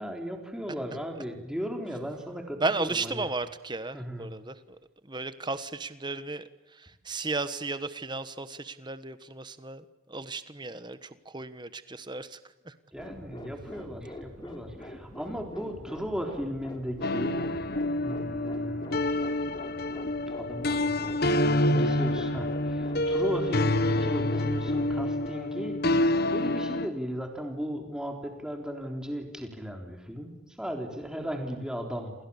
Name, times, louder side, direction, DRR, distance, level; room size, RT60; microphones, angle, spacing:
voice 1, 0.0-3.3 3.9-4.3 12.9-17.7 18.0-19.1 20.4-25.8 26.3-32.1, equal, 5° right, 3 dB, 3.7 m, -36 dB
voice 2, 2.6-4.8 5.0-12.4 12.6-12.7, right 3 dB, 20° right, 12 dB, 1.3 m, -34 dB
sound 1, 13.0-25.1, equal, 20° left, 3.4 m, -44 dB
sound 2, 17.0-26.9, left 1 dB, 45° left, 1.2 m, -27 dB
28.0 x 28.0 x 7.2 m, 0.92 s
head